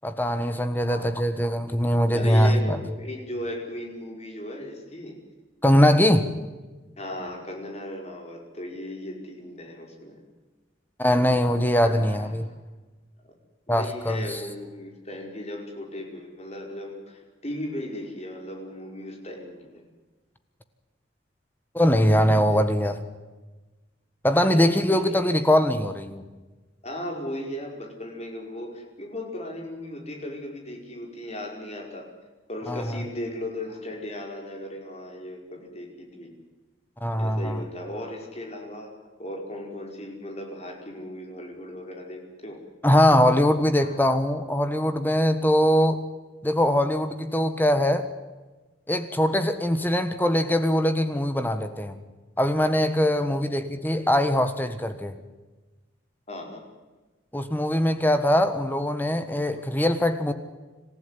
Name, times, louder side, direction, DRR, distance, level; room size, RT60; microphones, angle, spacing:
voice 1, 0.0-2.8 5.6-6.3 11.0-12.5 13.7-14.4 21.7-23.0 24.2-26.2 32.7-32.8 37.0-37.6 42.8-46.0 46.4-48.1 48.9-51.9 52.4-55.1 57.3-60.3, equal, 10° left, 1.4 m, -22 dB
voice 2, 2.1-5.2 7.0-10.2 11.8-12.5 13.2-13.3 13.7-19.8 24.5-25.2 26.8-32.1 32.5-36.3 37.2-42.6 43.8-44.0 53.0-53.3 56.3-56.6, left 1 dB, 35° left, 5.2 m, -37 dB
27.0 x 15.0 x 9.8 m
head